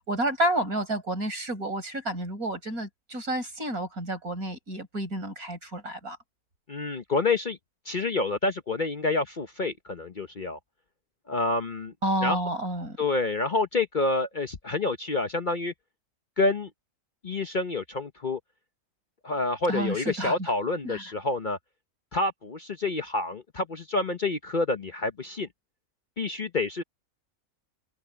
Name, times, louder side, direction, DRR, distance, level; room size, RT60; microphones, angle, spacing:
voice 1, 0.0-6.2 12.0-13.0 19.7-20.5 20.8-21.1, right 1 dB, 75° right, 5.8 m, -30 dB
voice 2, 6.7-7.6 7.9-10.6 11.3-11.9 12.2-12.4 13.0-15.7 16.4-16.7 17.2-18.4 19.2-21.6 22.1-25.5 26.2-26.8, left 3 dB, 40° left, 0.9 m, -28 dB
omnidirectional pair, 1.6 m